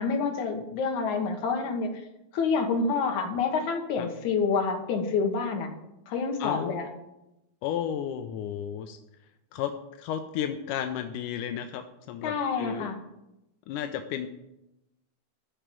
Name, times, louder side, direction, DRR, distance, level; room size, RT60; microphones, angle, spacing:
voice 1, 0.0-1.9 2.3-5.7 6.1-6.9 12.2-13.0, left 5 dB, 70° left, 3 dB, 2.8 m, -27 dB
voice 2, 7.6-9.0 9.5-9.7 10.0-12.9 13.7-14.3, left 9 dB, 90° left, 6 dB, 2.2 m, -33 dB
13.5 x 4.9 x 9.1 m, 0.91 s
omnidirectional pair, 3.6 m